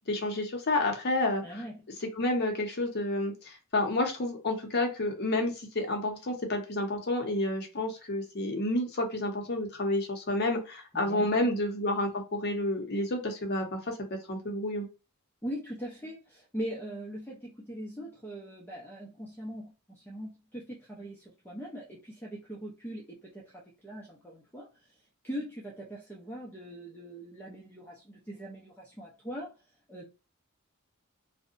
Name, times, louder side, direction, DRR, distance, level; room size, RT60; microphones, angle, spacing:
voice 1, 0.1-1.6 2.2-13.9 14.3-14.9, left 1 dB, 50° left, 3 dB, 0.7 m, -30 dB
voice 2, 1.4-1.9 10.9-11.5 15.4-24.7 25.2-29.6 29.9-30.1, equal, 10° left, -4 dB, 0.5 m, -41 dB
2.7 x 2.1 x 2.5 m, 0.31 s
head